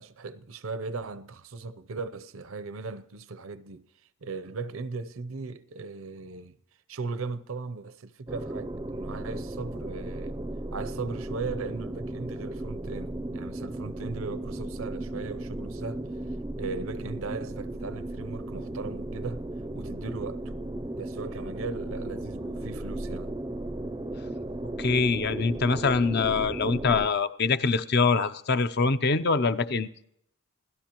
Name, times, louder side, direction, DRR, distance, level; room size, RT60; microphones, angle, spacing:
voice 1, 0.0-3.9 4.2-6.6 6.9-10.4 10.7-16.0 16.6-19.4 19.7-20.4 21.0-23.4, right 4 dB, 70° right, 0.6 m, -38 dB
sound 1, 8.3-27.1, right 1 dB, 20° right, 0.5 m, -35 dB
voice 2, 24.8-29.9, left 4 dB, 50° left, 0.6 m, -24 dB
26.5 x 17.0 x 3.0 m
head